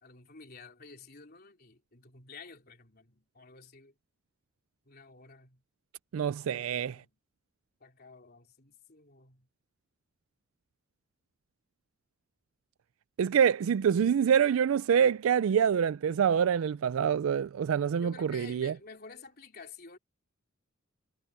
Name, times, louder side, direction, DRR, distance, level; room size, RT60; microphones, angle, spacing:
voice 1, 0.0-3.9 4.9-5.6 6.4-7.1 7.8-9.5 18.0-20.0, left 4 dB, 45° left, 3.6 m, -51 dB
voice 2, 6.1-7.0 13.2-18.7, right 8 dB, 80° right, 0.4 m, -26 dB
head